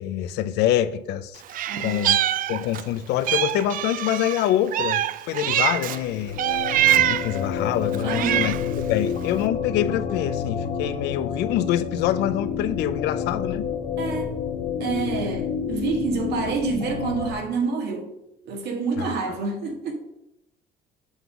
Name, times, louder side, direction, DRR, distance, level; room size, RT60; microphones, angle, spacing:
voice 1, 0.0-1.4 1.8-2.2 2.5-6.4 6.9-8.6 8.9-13.7 19.0-19.1, left 11 dB, 85° left, 0.6 m, -25 dB
Meow, 1.5-2.9 3.2-6.0 6.4-7.4 7.9-8.7, right 12 dB, 55° right, 0.4 m, -24 dB
voice 2, 1.7-2.2 8.0-8.5 14.0-14.3 14.8-18.1 18.5-19.9, right 4 dB, 80° right, 1.8 m, -28 dB
sound 1, 5.9-17.3, left 7 dB, 55° left, 1.5 m, -29 dB
8.1 x 3.8 x 6.8 m
cardioid pair, 110°, 17 cm